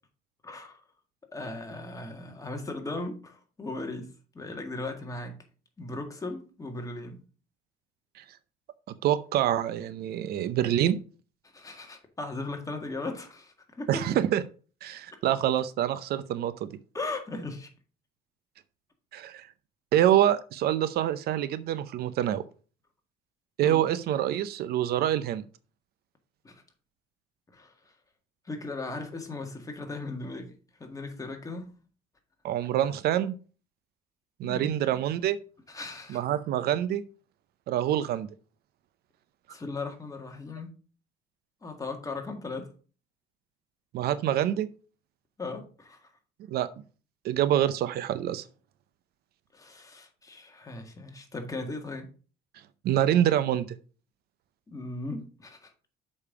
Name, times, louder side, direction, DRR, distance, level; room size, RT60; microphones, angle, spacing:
voice 1, 0.4-0.8 1.3-4.1 4.3-5.3 5.8-7.2 11.5-14.0 16.9-17.7 23.6-23.8 26.4-26.6 27.5-27.9 28.5-31.8 34.4-34.7 35.7-36.2 39.5-40.7 41.6-42.7 45.4-46.1 49.5-52.1 54.7-55.7, left 2 dB, 20° left, 3 dB, 1.8 m, -37 dB
voice 2, 8.9-11.0 13.9-14.4 14.8-16.7 19.1-19.5 19.9-22.4 23.6-25.4 32.4-33.4 34.4-35.4 36.1-37.0 37.7-38.3 43.9-44.7 46.5-46.7 47.2-48.4 52.8-53.7, right 11 dB, 70° right, 15 dB, 0.6 m, -26 dB
6.7 x 5.4 x 4.8 m, 0.38 s
cardioid pair, 110°, 17 cm